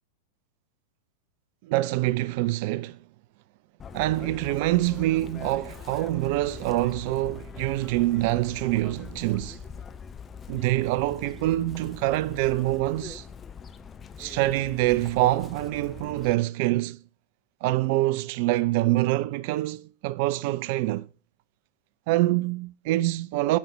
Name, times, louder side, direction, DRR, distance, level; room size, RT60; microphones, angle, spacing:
voice 1, 1.6-3.0 3.9-9.6 10.5-13.3 14.2-17.0 17.6-21.1 22.1-23.6, right 17 dB, 45° right, 0.4 m, -25 dB
Chirp tweet, 3.8-16.3, left 6 dB, 20° left, 0.7 m, -43 dB
9.2 x 7.3 x 4.4 m
figure-of-eight pair, 90°, 0 cm